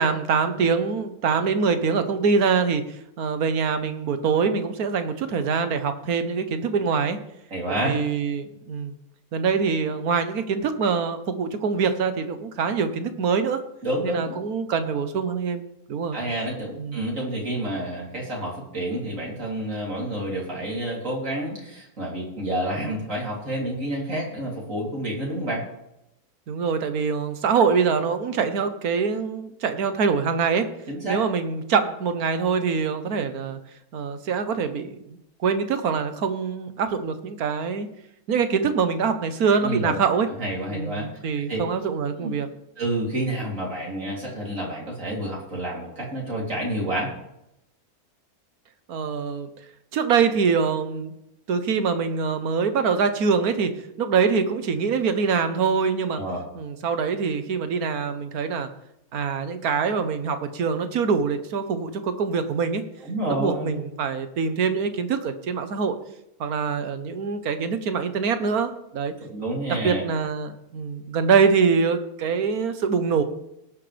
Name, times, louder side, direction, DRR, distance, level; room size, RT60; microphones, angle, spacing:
voice 1, 0.0-2.8 3.2-7.2 7.7-8.9 9.3-13.6 14.0-16.2 16.8-17.0 26.5-30.7 31.1-33.6 33.9-37.9 38.3-40.3 40.7-42.5 48.9-49.5 49.9-51.1 51.5-53.7 54.0-56.2 56.5-58.7 59.1-62.8 63.3-66.0 66.4-69.1 69.7-73.2, right 5 dB, 80° right, 9 dB, 1.5 m, -24 dB
voice 2, 7.5-7.9 13.8-14.3 16.1-25.6 30.9-31.2 39.6-40.0 40.4-41.1 41.5-41.6 42.2-42.3 42.8-47.1 56.1-56.4 63.0-63.8 69.3-70.0, right 1 dB, 60° right, -3 dB, 3.6 m, -29 dB
18.0 x 9.8 x 3.4 m, 0.83 s
omnidirectional pair, 1.5 m